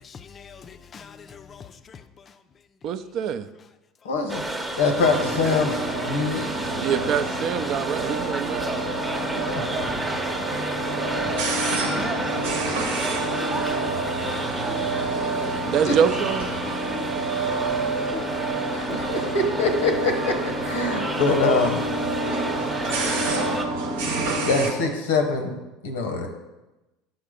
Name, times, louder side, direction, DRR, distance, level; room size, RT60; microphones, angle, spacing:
voice 1, 0.0-2.0 11.8-12.6 12.9-14.0 14.2-15.6 16.8-17.6 18.1-18.5, left 5 dB, 35° left, 0.4 m, -42 dB
voice 2, 2.8-3.5 6.8-8.7 15.7-16.5, right 8 dB, 55° right, 0.4 m, -25 dB
voice 3, 4.0-4.4 4.8-6.5 9.4-9.6 10.5-10.7 11.2-11.5 11.9-12.3 13.1-13.5 15.8-16.0 18.7-21.8 24.4-25.6 25.8-26.3, left 3 dB, 90° left, 0.9 m, -24 dB
sound 1, 4.3-23.7, right 2 dB, 15° right, 0.7 m, -31 dB
sound 2, 5.0-24.7, right 2 dB, 85° right, 1.0 m, -28 dB
5.9 x 4.3 x 5.0 m
hypercardioid pair, 90°, 0 cm